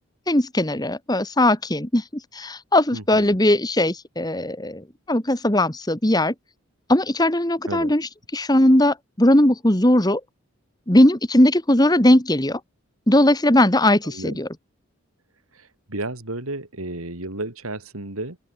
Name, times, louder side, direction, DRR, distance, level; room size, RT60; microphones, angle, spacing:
voice 1, 0.3-2.0 2.3-6.3 6.9-10.2 10.9-12.6 13.1-14.5, left 1 dB, 20° left, 1.7 m, -19 dB
voice 2, 2.9-3.4 7.7-7.9 14.0-14.4 15.5-18.4, right 2 dB, 85° right, 4.4 m, -32 dB
open air
head